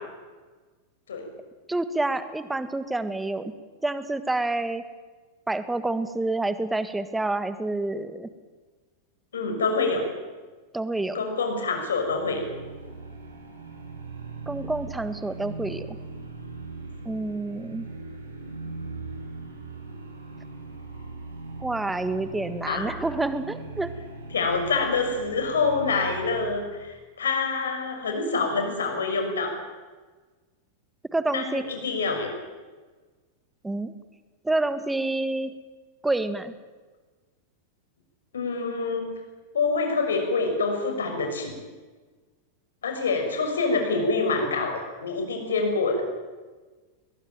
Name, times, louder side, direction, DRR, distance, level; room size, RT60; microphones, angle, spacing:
voice 1, 1.7-3.5 3.8-4.8 5.5-8.3 10.7-11.2 14.5-15.9 17.0-17.9 21.6-23.9 31.1-31.6 33.6-33.9 34.4-35.5 36.0-36.5, right 2 dB, 5° right, 12 dB, 1.6 m, -28 dB
voice 2, 9.3-10.1 11.1-12.4 22.7-22.9 24.3-29.5 31.3-32.3 38.3-39.0 39.5-41.5 42.8-46.0, left 4 dB, 65° left, 4 dB, 6.3 m, -26 dB
sound 1, 11.9-26.7, right 3 dB, 75° right, 5.3 m, -40 dB
22.0 x 21.5 x 9.1 m, 1.3 s
figure-of-eight pair, 90°, 0 cm